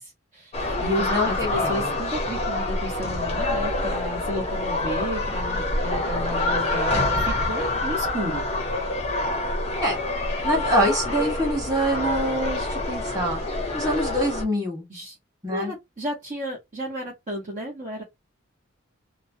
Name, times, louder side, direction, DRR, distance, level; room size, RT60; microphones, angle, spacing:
voice 1, 0.0-8.5 13.8-14.0 14.9-15.1 15.5-18.0, equal, 40° right, 1.0 m, -33 dB
sound 1, 0.5-14.4, left 2 dB, 30° left, 0.7 m, -26 dB
voice 2, 1.0-1.9 9.8-10.0 10.4-13.4 13.7-14.9 15.4-15.7, equal, 20° right, 1.4 m, -25 dB
2.9 x 2.2 x 2.7 m
head